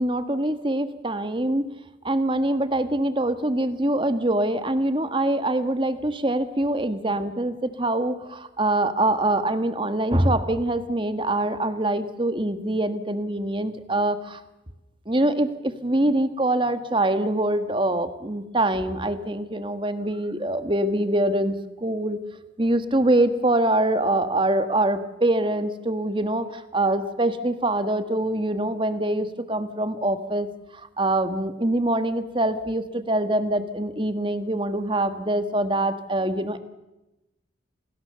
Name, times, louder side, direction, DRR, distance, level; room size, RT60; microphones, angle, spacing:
voice 1, 0.0-1.7 2.0-14.4 15.1-22.2 22.6-30.5 30.7-36.6, right 1 dB, 25° right, 10 dB, 1.5 m, -24 dB
27.5 x 19.5 x 6.9 m, 0.98 s
head